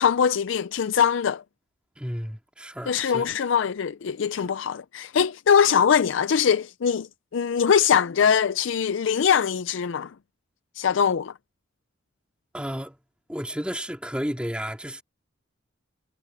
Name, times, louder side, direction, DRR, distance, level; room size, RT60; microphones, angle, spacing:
voice 1, 0.0-1.4 2.9-10.1 10.8-11.3, left 7 dB, 70° left, 0.4 m, -22 dB
voice 2, 2.0-3.3 4.4-4.5 12.5-13.0 13.3-15.0, equal, 5° right, 3.5 m, -32 dB
head